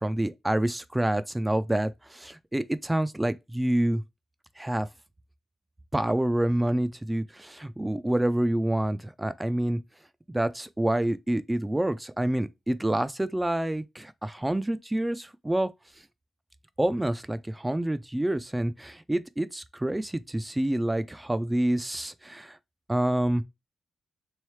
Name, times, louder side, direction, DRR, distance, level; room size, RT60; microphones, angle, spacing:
voice 1, 0.0-4.0 4.6-4.9 5.9-9.8 10.3-15.7 16.8-22.6 22.9-23.4, right 1 dB, 10° right, 0.3 m, -27 dB
3.6 x 3.1 x 3.1 m
wide cardioid pair, 115°, 0 cm